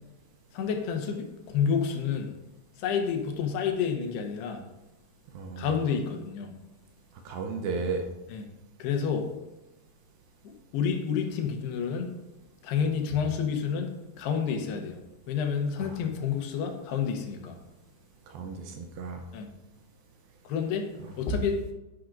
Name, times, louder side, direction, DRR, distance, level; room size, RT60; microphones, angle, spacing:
voice 1, 0.5-2.3 2.8-4.6 5.6-6.5 8.3-8.4 8.8-9.3 10.7-12.1 12.6-13.9 14.2-15.0 15.3-17.6 19.3-19.5 20.5-20.8 21.1-21.7, left 6 dB, 80° left, 4 dB, 3.1 m, -29 dB
voice 2, 5.3-5.7 7.3-8.0 15.8-16.0 18.3-19.2 21.0-21.1, right 4 dB, 80° right, 4 dB, 2.4 m, -34 dB
10.5 x 10.0 x 2.6 m, 0.98 s
omnidirectional pair, 4.6 m